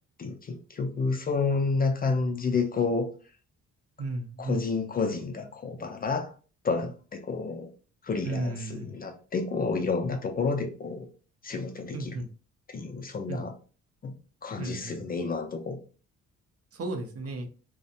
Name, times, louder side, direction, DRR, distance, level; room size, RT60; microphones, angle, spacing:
voice 1, 0.2-3.1 4.4-6.3 6.6-7.7 8.0-11.1 11.4-12.2 12.7-13.5 14.0-14.1 14.4-15.8, left 4 dB, 30° left, 0.4 m, -30 dB
voice 2, 4.0-4.6 8.2-8.9 11.9-12.3 13.3-13.4 14.6-15.0 16.7-17.5, right 2 dB, 50° right, 0.6 m, -34 dB
2.5 x 2.0 x 2.7 m
cardioid pair, 90°, 30 cm